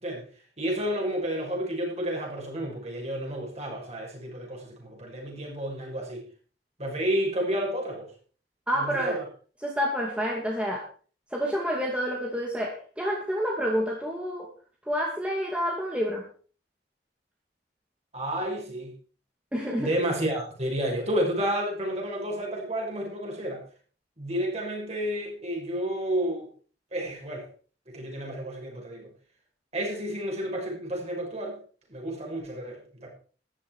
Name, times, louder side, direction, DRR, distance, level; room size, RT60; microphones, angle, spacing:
voice 1, 0.6-6.3 6.8-8.1 8.8-9.2 18.1-18.9 19.8-23.6 24.2-26.5 26.9-27.5 27.9-29.1 29.7-31.6 31.9-33.1, right 1 dB, 40° right, -1 dB, 6.1 m, -31 dB
voice 2, 8.7-9.2 9.6-10.8 11.3-14.5 14.9-16.2 19.5-19.9, equal, 5° right, -1 dB, 2.3 m, -28 dB
14.0 x 11.5 x 4.7 m, 0.41 s
head